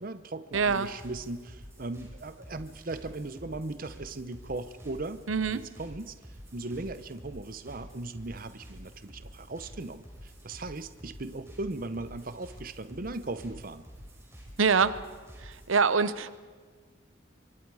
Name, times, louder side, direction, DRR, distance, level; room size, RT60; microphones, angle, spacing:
voice 1, 0.0-5.2 5.5-6.1 6.5-13.8, right 2 dB, 45° right, 12 dB, 0.8 m, -38 dB
sound 1, 0.5-15.8, equal, 15° right, 4.6 m, -49 dB
voice 2, 0.5-0.9 5.3-5.6 14.6-15.0 15.4-16.3, right 5 dB, 85° right, 14 dB, 0.9 m, -25 dB
24.5 x 24.0 x 4.9 m, 1.5 s
head